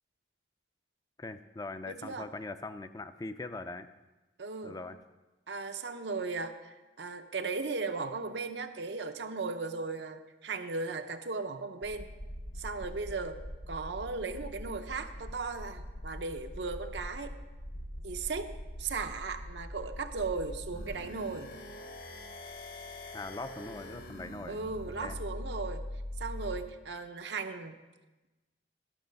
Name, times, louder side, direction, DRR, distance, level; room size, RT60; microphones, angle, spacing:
voice 1, 1.2-3.9 4.6-5.0 23.1-24.6 25.0-25.2, left 3 dB, 20° left, 11 dB, 0.4 m, -41 dB
voice 2, 1.9-2.3 4.4-4.8 5.5-12.1 12.6-13.4 13.7-17.3 18.0-18.5 18.8-21.5 24.5-25.8 26.2-27.8, right 4 dB, 75° right, 7 dB, 0.7 m, -37 dB
sound 1, 11.8-21.0, equal, 70° left, 1.3 m, -43 dB
sound 2, 20.7-26.6, left 1 dB, 55° left, 1.0 m, -42 dB
12.0 x 6.4 x 5.2 m, 1.1 s
head